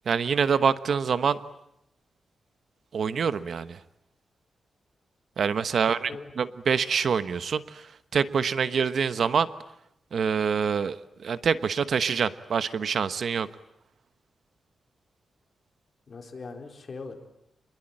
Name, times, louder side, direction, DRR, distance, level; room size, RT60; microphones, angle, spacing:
voice 1, 0.1-1.4 2.9-3.8 5.4-7.9 8.1-9.5 10.1-11.0 11.2-13.5, right 6 dB, 60° right, 13 dB, 1.1 m, -25 dB
voice 2, 5.8-6.3 16.1-17.1, left 4 dB, 40° left, 4 dB, 4.2 m, -41 dB
28.0 x 22.0 x 9.0 m, 0.79 s
wide cardioid pair, 140°, 0 cm